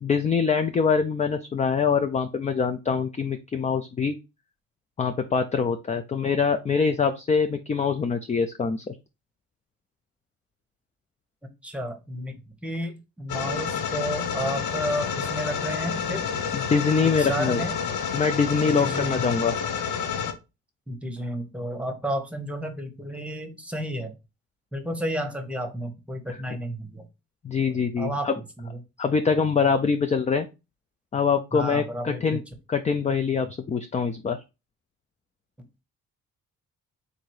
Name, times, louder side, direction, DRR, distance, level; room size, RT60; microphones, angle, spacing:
voice 1, 0.0-4.2 5.0-8.8 16.5-17.6 18.1-19.5 27.4-28.4 29.0-30.5 31.1-32.4 32.7-34.4, left 5 dB, 25° left, 8 dB, 0.4 m, -24 dB
voice 2, 11.6-16.2 17.2-17.8 18.7-19.4 20.9-24.1 24.7-27.1 27.7-28.3 28.6-28.8 31.5-32.4, equal, 5° right, 5 dB, 1.1 m, -32 dB
sound 1, 13.3-20.3, left 7 dB, 80° left, 0.8 m, -29 dB
3.8 x 2.6 x 4.7 m, 0.27 s
cardioid pair, 90°, 30 cm